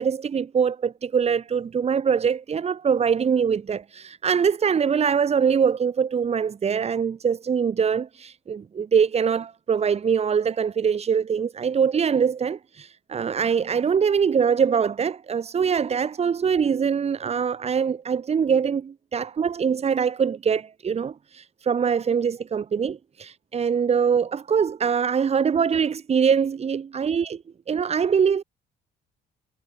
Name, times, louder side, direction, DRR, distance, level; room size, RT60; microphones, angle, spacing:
voice 1, 0.0-27.4 27.7-28.4, right 7 dB, 40° right, 7.6 m, -23 dB
cardioid pair, 110°, 17 cm